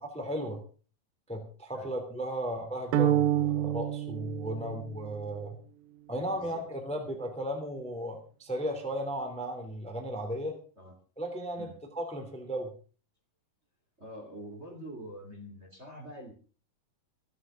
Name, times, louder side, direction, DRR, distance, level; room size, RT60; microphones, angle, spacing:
voice 1, 0.1-0.6 1.3-5.6 6.1-10.5 11.2-11.7 11.9-12.7, equal, ahead, 4 dB, 2.5 m, -35 dB
sound 1, 2.9-5.2, right 12 dB, 75° right, 2.4 m, -28 dB
voice 2, 6.3-6.6 10.8-10.9 11.6-11.7 14.0-16.3, equal, 20° right, 3 dB, 2.7 m, -45 dB
25.5 x 9.7 x 3.8 m, 0.39 s
omnidirectional pair, 4.3 m